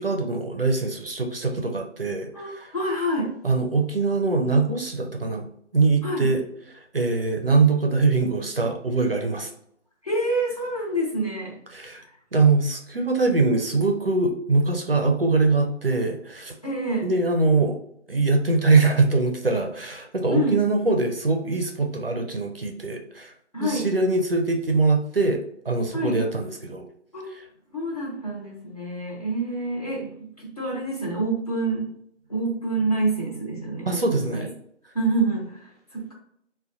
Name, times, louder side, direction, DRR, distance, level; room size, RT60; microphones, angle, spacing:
voice 1, 0.0-2.7 3.4-5.5 5.7-6.4 6.7-9.5 11.7-12.0 12.3-16.5 17.0-17.8 18.1-23.3 23.6-25.4 25.6-26.8 27.3-27.4 33.9-34.5, right 3 dB, 55° right, 3 dB, 0.5 m, -23 dB
voice 2, 2.3-3.4 6.0-6.3 10.0-11.6 12.0-12.1 16.6-17.1 20.3-20.6 23.5-23.9 25.9-26.2 27.1-27.3 27.7-31.9 32.3-34.5 34.9-36.1, right 2 dB, 30° left, -3 dB, 0.8 m, -27 dB
4.4 x 2.2 x 2.5 m, 0.70 s
figure-of-eight pair, 165°, 36 cm